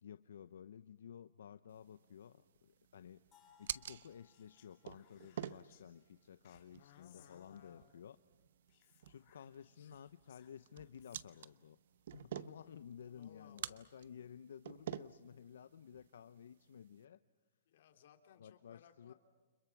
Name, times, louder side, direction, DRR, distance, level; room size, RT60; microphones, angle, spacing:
voice 1, 0.0-3.2 3.6-8.2 9.1-11.8 12.1-17.2 18.4-19.1, left 8 dB, 75° left, 13 dB, 0.7 m, -54 dB
sound 1, 1.7-17.0, right 10 dB, 60° right, 0.8 m, -51 dB
sound 2, 3.3-7.2, left 6 dB, 15° left, 3.8 m, -72 dB
Speech, 4.3-5.8 6.4-7.9 8.7-11.6, left 13 dB, 35° left, 3.2 m, -70 dB
voice 2, 6.5-7.9 9.7-9.9 13.1-13.8 17.7-19.1, left 9 dB, 50° left, 5 dB, 2.9 m, -63 dB
29.5 x 26.5 x 6.0 m, 1.3 s
hypercardioid pair, 170°, 0 cm